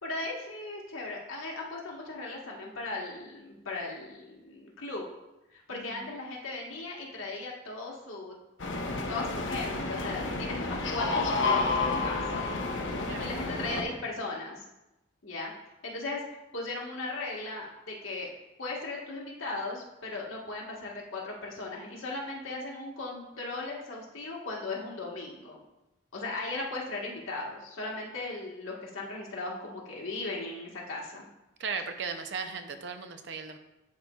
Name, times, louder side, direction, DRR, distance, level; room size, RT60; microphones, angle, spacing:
voice 1, 0.0-5.1 5.5-8.3 9.1-12.5 13.2-14.6 15.2-15.5 15.8-16.2 16.5-18.3 18.6-25.6 26.1-31.3, left 2 dB, 85° left, -2 dB, 1.4 m, -37 dB
voice 2, 5.7-6.1 13.1-13.4 31.6-33.6, right 5 dB, 60° right, 8 dB, 0.5 m, -37 dB
sound 1, 8.6-13.8, left 3 dB, 65° left, 0.7 m, -30 dB
11.0 x 4.1 x 2.3 m, 0.95 s
head